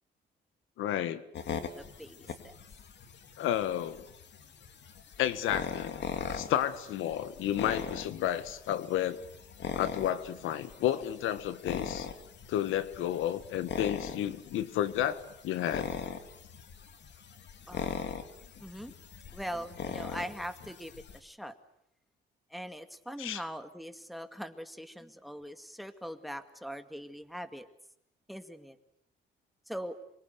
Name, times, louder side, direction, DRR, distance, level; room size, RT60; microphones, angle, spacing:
voice 1, 0.8-1.2 3.4-4.1 5.2-6.0 6.3-9.2 9.7-12.1 12.5-15.9 23.2-23.4, left 11 dB, 90° left, 13 dB, 1.6 m, -31 dB
sound 1, 1.3-21.2, left 7 dB, 60° left, 2.8 m, -41 dB
voice 2, 1.8-2.5 17.7-18.3 18.6-18.9 19.3-21.6 22.5-27.7 28.3-28.8 29.7-30.0, equal, ahead, 9 dB, 2.2 m, -42 dB
27.0 x 23.5 x 8.2 m, 0.76 s
cardioid pair, 90°, 20 cm